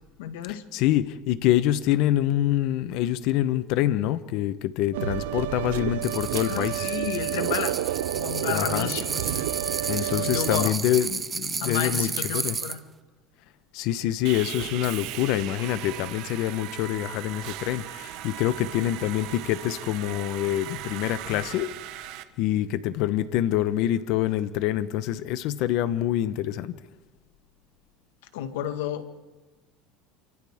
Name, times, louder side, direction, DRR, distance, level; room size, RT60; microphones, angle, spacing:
voice 1, 0.2-0.6 6.5-7.8 8.1-9.5 10.0-10.7 11.6-12.8 28.3-29.2, left 10 dB, 85° left, 8 dB, 1.8 m, -32 dB
voice 2, 0.7-6.9 8.5-8.9 9.9-12.1 12.3-12.6 13.7-21.7 22.0-22.1 22.4-26.8, left 13 dB, 65° left, 13 dB, 1.1 m, -26 dB
sound 1, 4.9-10.7, right 13 dB, 90° right, 0.7 m, -30 dB
sound 2, 6.0-12.8, right 5 dB, 20° right, 0.9 m, -32 dB
Sawing, 14.2-22.2, right 14 dB, 65° right, 1.3 m, -38 dB
29.0 x 24.5 x 3.7 m, 1.2 s
supercardioid pair, 125°, 0 cm